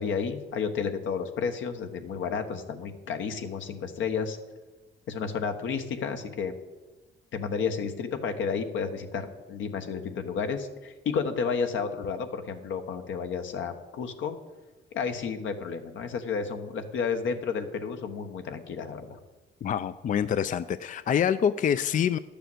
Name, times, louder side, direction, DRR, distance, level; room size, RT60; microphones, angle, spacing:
voice 1, 0.0-4.4 5.1-6.5 7.3-14.4 14.9-19.2, left 6 dB, 75° left, 6 dB, 1.3 m, -31 dB
voice 2, 19.6-22.2, left 8 dB, 40° left, 13 dB, 0.4 m, -26 dB
11.0 x 6.9 x 7.8 m, 1.2 s
cardioid pair, 90°, 20 cm